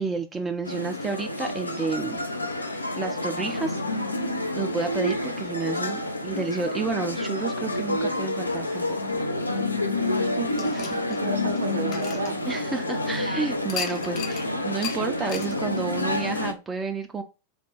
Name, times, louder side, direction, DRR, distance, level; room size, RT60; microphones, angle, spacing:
voice 1, 0.0-2.2 3.0-3.8 4.6-9.1 10.7-10.8 11.1-11.2 12.5-17.2, right 4 dB, 15° right, 0.3 m, -31 dB
sound 1, 0.6-16.5, left 1 dB, 85° left, 0.4 m, -29 dB
voice 2, 10.1-10.9 11.2-12.4, right 5 dB, 65° right, 0.7 m, -32 dB
sound 2, 10.6-13.0 13.7-14.4 14.8-15.0 15.3-15.5, left 7 dB, 40° left, 0.6 m, -36 dB
3.4 x 2.2 x 3.1 m
figure-of-eight pair, 90°, 0 cm